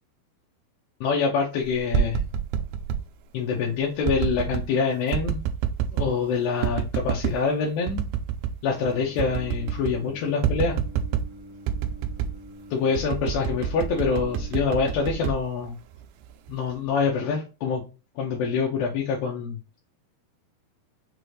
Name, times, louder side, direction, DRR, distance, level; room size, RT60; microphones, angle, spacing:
voice 1, 1.0-2.2 3.3-5.4 5.9-8.0 8.6-10.8 12.7-15.8 16.5-17.8 18.2-19.6, left 5 dB, 80° left, -2 dB, 2.6 m, -25 dB
sound 1, 1.7-3.0 4.0-4.7 5.1-6.2 6.6-7.4 7.9-8.6 8.9-9.0 9.2-10.0 10.4-11.3 11.7-12.4 12.9-16.1 16.5-16.9, right 8 dB, 85° right, 2.4 m, -27 dB
Singing, 8.7-15.2, left 1 dB, 65° right, 0.7 m, -45 dB
6.4 x 2.6 x 3.1 m, 0.32 s
omnidirectional pair, 4.3 m